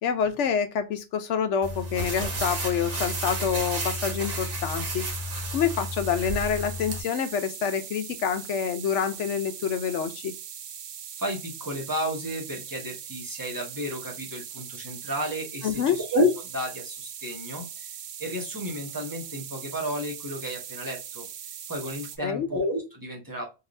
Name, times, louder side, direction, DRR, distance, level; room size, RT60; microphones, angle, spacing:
voice 1, 0.0-5.1 5.5-10.3 15.6-16.0 22.2-22.5, left 7 dB, 75° left, 1.0 m, -27 dB
sound 1, 1.6-7.0, equal, 50° right, 1.1 m, -32 dB
sound 2, 2.9-22.2, right 8 dB, 85° right, 1.0 m, -41 dB
voice 2, 11.2-17.9 18.2-21.3 21.7-23.5, left 1 dB, 15° right, 1.4 m, -31 dB
3.8 x 2.8 x 2.5 m
omnidirectional pair, 1.3 m